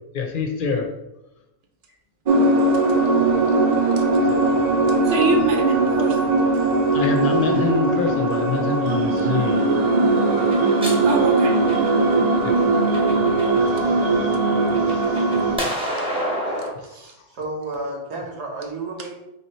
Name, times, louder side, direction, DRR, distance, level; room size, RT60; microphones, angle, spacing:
voice 1, 0.1-0.9 4.2-4.4 6.9-10.6 12.4-12.6 13.6-14.4 14.7-15.6 16.7-17.3, left 5 dB, 60° left, 3 dB, 0.7 m, -27 dB
sound 1, 2.3-15.6, right 2 dB, 50° right, 0.5 m, -19 dB
voice 2, 5.0-6.4 11.0-11.6 16.0-16.1 16.9-17.1, right 4 dB, 65° right, 3 dB, 0.9 m, -24 dB
sound 2, 10.4-12.1 12.7-13.6 14.0-16.7, equal, 5° right, 0.8 m, -29 dB
voice 3, 17.3-19.1, right 2 dB, 85° right, 0 dB, 1.3 m, -31 dB
3.6 x 2.8 x 4.2 m, 0.91 s
omnidirectional pair, 1.1 m